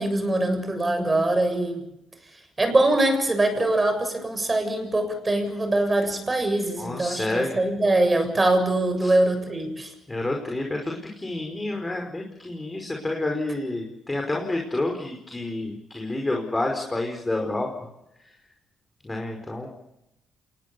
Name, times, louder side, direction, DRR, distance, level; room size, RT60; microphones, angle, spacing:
voice 1, 0.0-1.8 2.6-9.9, right 2 dB, 25° right, 7 dB, 7.4 m, -23 dB
voice 2, 6.8-7.6 9.0-9.1 10.1-17.9 19.0-19.7, left 2 dB, 15° left, 1 dB, 5.2 m, -29 dB
28.0 x 20.0 x 7.0 m, 0.88 s
cardioid pair, 90°, 0 cm